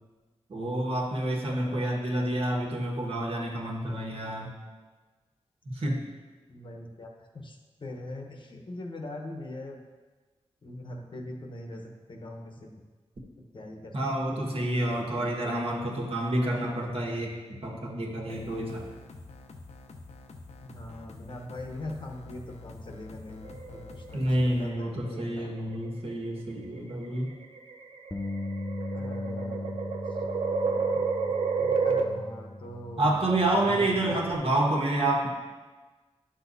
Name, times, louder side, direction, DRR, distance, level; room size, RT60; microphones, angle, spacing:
voice 1, 0.5-4.5 5.6-6.0 13.9-18.9 24.1-27.3 33.0-35.3, right 1 dB, 55° right, -2 dB, 1.6 m, -28 dB
voice 2, 1.4-1.9 6.5-9.8 10.6-12.8 13.5-13.9 14.3-15.6 20.6-25.5 28.9-30.2 30.6-30.9 31.5-33.2 33.6-34.3, left 1 dB, 45° left, 2 dB, 1.0 m, -42 dB
sound 1, 18.3-24.7, left 3 dB, 80° left, 0.8 m, -47 dB
sound 2, 23.4-24.3 25.4-25.9 26.8-32.0, right 5 dB, 75° right, 0.7 m, -30 dB
Bass guitar, 28.1-34.3, left 2 dB, 15° left, 0.5 m, -38 dB
11.5 x 6.2 x 2.7 m, 1.3 s
wide cardioid pair, 110°, 11 cm